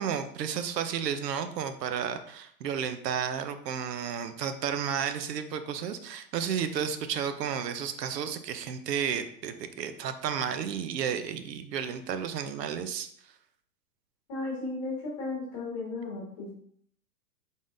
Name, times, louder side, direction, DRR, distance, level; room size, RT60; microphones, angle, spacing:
voice 1, 0.0-13.1, right 8 dB, 80° right, 9 dB, 0.6 m, -32 dB
voice 2, 14.3-16.5, left 3 dB, 20° left, -5 dB, 1.2 m, -35 dB
3.9 x 3.6 x 2.5 m, 0.63 s
hypercardioid pair, 170°, 48 cm